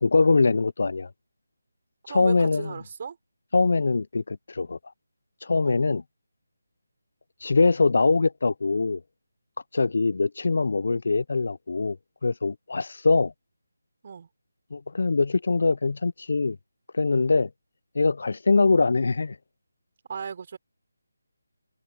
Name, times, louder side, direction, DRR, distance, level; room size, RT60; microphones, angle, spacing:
voice 1, 0.0-1.1 2.1-2.7 3.5-4.8 5.4-6.0 7.4-9.0 9.7-12.0 12.2-13.3 14.7-16.6 16.9-17.5 17.9-19.4, left 3 dB, 60° left, 0.6 m, -23 dB
voice 2, 2.1-3.2 5.6-5.8 14.0-14.3 20.1-20.6, right 6 dB, 40° right, 4.5 m, -36 dB
figure-of-eight pair, 160°, 0 cm